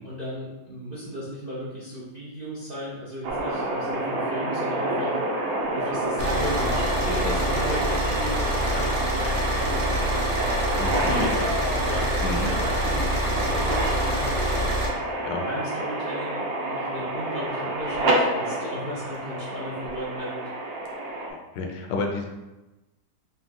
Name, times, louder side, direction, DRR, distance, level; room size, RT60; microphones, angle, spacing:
voice 1, 0.0-5.2 5.7-10.3 10.9-14.6 15.3-20.5, equal, 55° right, -7 dB, 0.6 m, -35 dB
sound 1, 3.2-21.3, right 1 dB, 80° right, 1.4 m, -28 dB
Car / Idling, 6.2-14.9, equal, 30° right, 0.9 m, -26 dB
voice 2, 10.8-11.3 12.2-12.5 15.2-15.4 21.3-22.3, left 3 dB, 75° left, 2 dB, 1.2 m, -30 dB
4.1 x 2.8 x 3.6 m, 1.1 s
omnidirectional pair, 2.0 m